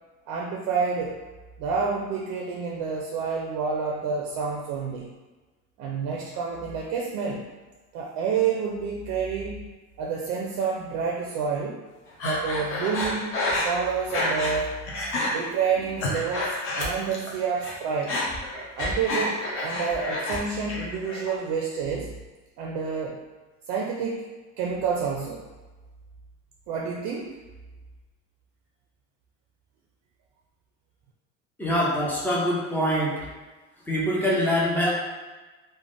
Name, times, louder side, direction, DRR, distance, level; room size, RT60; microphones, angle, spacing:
voice 1, 0.3-1.2 1.6-5.1 5.8-7.5 7.9-9.7 10.0-11.8 12.2-13.3 13.6-14.8 15.3-18.2 18.8-22.1 22.6-23.2 23.7-24.3 24.6-25.4 26.7-27.3, right 5 dB, 65° right, 0 dB, 0.4 m, -28 dB
Breathing, 12.2-14.6 14.9-15.3 15.8-17.3 17.6-20.4 20.7-21.3, left 1 dB, 45° left, 0.7 m, -29 dB
voice 2, 31.6-33.2 33.9-34.9, equal, 5° left, -5 dB, 0.4 m, -24 dB
3.2 x 2.1 x 2.5 m, 1.2 s
cardioid pair, 160°, 31 cm